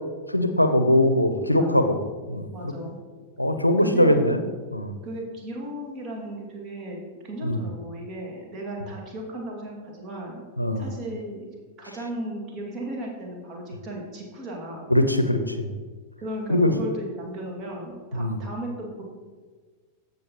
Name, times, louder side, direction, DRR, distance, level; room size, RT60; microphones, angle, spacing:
voice 1, 0.3-2.0 2.3-2.7 3.4-4.4 4.7-4.9 7.4-7.6 10.6-10.8 14.9-15.7 16.5-16.7 18.1-18.4, left 1 dB, 85° left, 8 dB, 0.6 m, -21 dB
voice 2, 1.5-1.9 2.5-3.0 3.8-4.3 5.0-7.0 7.2-10.5 10.7-11.5 11.8-14.9 16.2-19.0, right 1 dB, 30° right, -1 dB, 2.2 m, -35 dB
15.0 x 5.4 x 3.0 m, 1.4 s
figure-of-eight pair, 90°, 0 cm